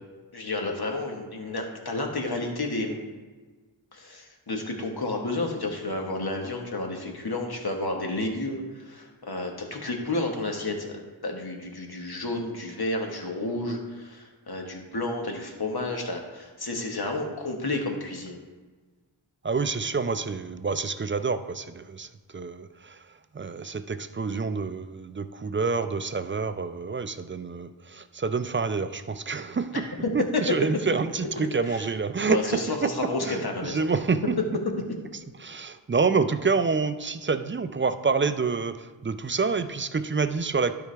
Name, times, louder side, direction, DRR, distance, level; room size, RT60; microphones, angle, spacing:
voice 1, 0.3-3.0 3.9-18.4 30.3-30.4 30.9-31.0 31.4-31.9 32.3-33.8, left 2 dB, 50° left, 2 dB, 1.4 m, -31 dB
voice 2, 19.4-23.0 23.3-34.6 35.1-40.7, right 4 dB, 30° right, 11 dB, 0.3 m, -28 dB
12.0 x 4.7 x 3.4 m, 1.4 s
wide cardioid pair, 55°, 47 cm